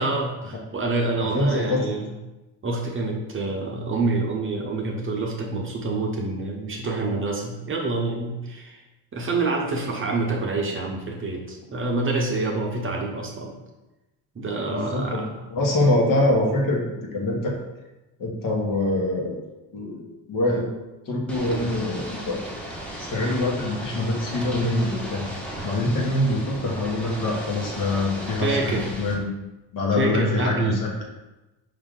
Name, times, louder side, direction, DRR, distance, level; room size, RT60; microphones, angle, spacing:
voice 1, 0.0-2.1 2.6-8.8 9.1-13.5 14.3-15.4 21.5-21.8 28.4-28.9 29.9-30.8, right 3 dB, 30° right, -1 dB, 0.8 m, -27 dB
voice 2, 1.2-1.8 14.7-15.2 15.5-16.8 17.1-17.5 18.2-19.4 19.7-20.0 20.3-20.7 21.0-25.2 25.6-29.3 29.7-31.0, left 2 dB, 50° left, -1 dB, 1.3 m, -24 dB
Ocean / Boat Water vehicle, 21.3-29.1, right 1 dB, 5° left, 1.0 m, -36 dB
5.1 x 2.8 x 3.7 m, 1.0 s
supercardioid pair, 85°, 44 cm